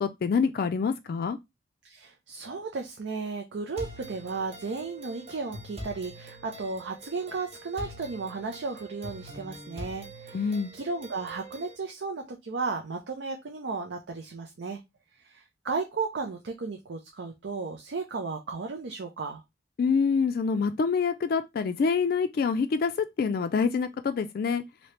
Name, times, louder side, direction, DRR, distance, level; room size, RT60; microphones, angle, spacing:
voice 1, 0.0-1.4 10.3-10.7 19.8-24.6, left 5 dB, 55° left, 0.3 m, -26 dB
voice 2, 1.8-14.8 15.2-19.4, right 4 dB, 80° right, 0.5 m, -34 dB
sound 1, 3.8-11.8, right 1 dB, 35° right, 0.9 m, -44 dB
2.9 x 2.7 x 3.2 m
head